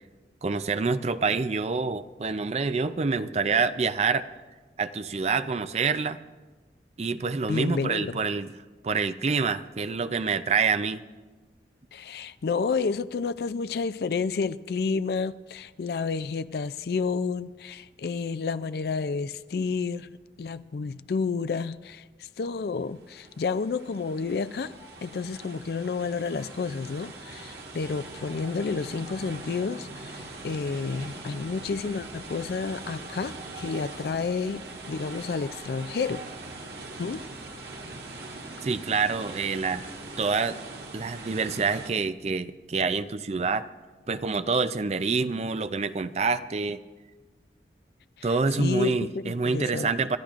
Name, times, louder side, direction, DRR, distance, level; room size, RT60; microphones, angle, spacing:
voice 1, 0.4-4.2 4.8-6.2 7.0-8.5 8.8-11.0 38.6-39.9 40.2-40.6 40.9-43.7 44.1-46.8 48.2-50.2, right 4 dB, 35° right, 0.4 m, -27 dB
voice 2, 7.5-8.2 11.9-20.1 20.4-24.7 25.0-36.2 37.0-37.2 48.2-50.1, left 4 dB, 60° left, 0.4 m, -30 dB
sound 1, 22.9-41.9, right 2 dB, 70° right, 1.7 m, -42 dB
27.5 x 13.5 x 2.5 m
head